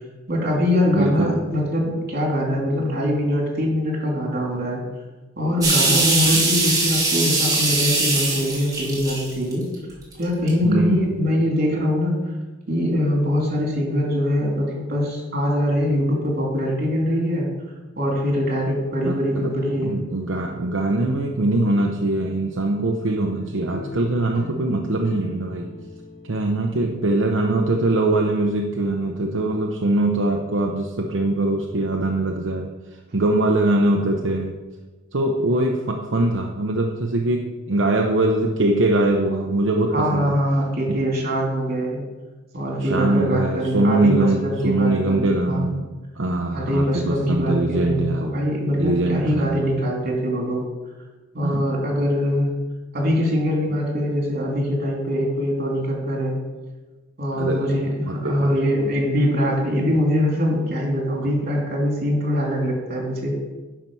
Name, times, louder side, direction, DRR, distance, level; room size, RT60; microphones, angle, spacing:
voice 1, 0.3-4.8 5.4-9.7 10.2-12.2 12.7-17.5 18.0-19.9 39.9-42.0 42.5-45.7 46.5-50.6 51.3-52.5 52.9-56.4 57.2-63.4, equal, 50° right, -1 dB, 3.1 m, -23 dB
voice 2, 0.9-1.4 6.3-6.4 10.6-11.1 19.1-19.6 19.8-25.7 26.3-32.7 33.1-34.6 35.1-40.3 40.9-41.0 42.8-45.9 46.2-48.3 48.8-49.7 51.4-51.7 57.3-57.8 58.0-58.5 61.2-61.3, right 2 dB, 75° right, 2 dB, 0.8 m, -22 dB
sound 1, 5.6-9.7 10.2-10.5, right 2 dB, 20° right, 2.7 m, -21 dB
sound 2, 23.0-27.9, left 1 dB, 85° left, 1.6 m, -39 dB
10.5 x 6.0 x 5.5 m, 1.2 s
head